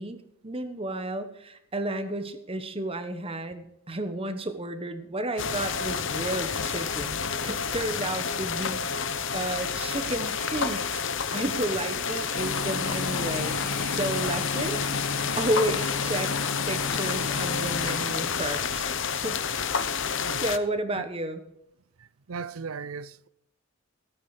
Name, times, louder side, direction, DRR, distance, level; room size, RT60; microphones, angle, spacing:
voice 1, 0.0-11.0 11.3-14.8 15.1-16.3 16.7-18.8 19.1-19.4 20.4-21.4, right 1 dB, 25° right, 1.2 m, -32 dB
sound 1, 5.4-20.6, left 6 dB, 55° left, 0.8 m, -30 dB
sound 2, 9.4-15.9, left 2 dB, 10° left, 1.2 m, -50 dB
sound 3, 12.3-18.5, left 4 dB, 70° left, 1.6 m, -32 dB
voice 2, 20.1-20.4 20.9-21.0 22.0-23.3, right 5 dB, 70° right, 0.6 m, -38 dB
17.0 x 9.3 x 5.0 m
head